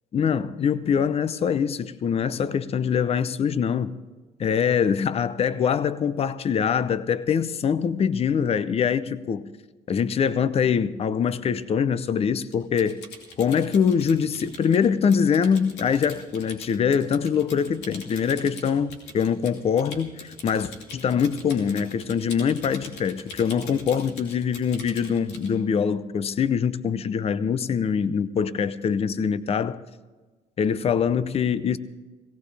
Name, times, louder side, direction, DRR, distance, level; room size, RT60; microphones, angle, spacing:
voice 1, 0.1-4.0 4.4-9.5 9.9-13.0 13.4-29.8 30.6-31.8, left 7 dB, 35° left, 0.6 m, -24 dB
Typing, 12.5-25.5, left 3 dB, 85° left, 2.7 m, -43 dB
17.5 x 17.5 x 3.4 m
cardioid pair, 110°, 17 cm